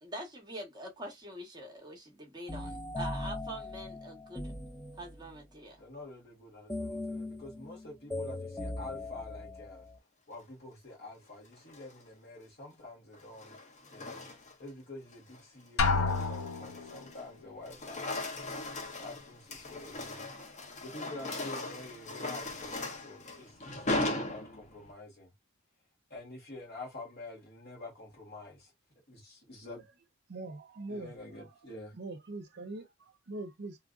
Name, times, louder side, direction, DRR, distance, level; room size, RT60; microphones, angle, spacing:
voice 1, 0.0-4.5 5.0-5.8, right 1 dB, 20° right, 1.0 m, -44 dB
sound 1, 2.5-5.5 6.7-10.0, left 2 dB, 10° left, 0.3 m, -40 dB
voice 2, 5.8-9.9 10.3-13.6 13.9-14.3 14.6-18.1 19.0-20.3 20.8-25.3 26.1-28.7 29.1-29.8 30.9-31.9, left 2 dB, 50° left, 1.7 m, -48 dB
sound 2, 11.5-12.0 13.1-14.7 15.1-15.4 15.9-17.3 17.6-24.9, left 2 dB, 35° left, 0.7 m, -38 dB
Drum, 15.8-17.0, left 4 dB, 85° left, 0.5 m, -29 dB
voice 3, 30.3-31.1 31.4-31.5 31.9-32.9 33.3-33.8, right 2 dB, 50° right, 0.7 m, -41 dB
3.1 x 2.5 x 2.4 m
head